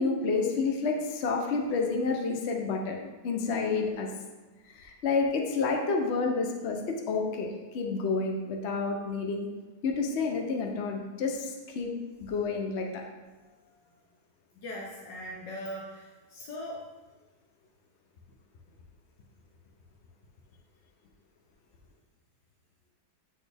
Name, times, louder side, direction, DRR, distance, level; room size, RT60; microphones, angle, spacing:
voice 1, 0.0-3.0 3.2-4.1 4.7-9.5 9.8-11.9 12.2-13.0, left 4 dB, 55° left, 2 dB, 0.8 m, -29 dB
voice 2, 14.6-16.8, equal, 85° left, -2 dB, 1.5 m, -40 dB
8.4 x 4.1 x 3.4 m, 1.2 s
omnidirectional pair, 1.9 m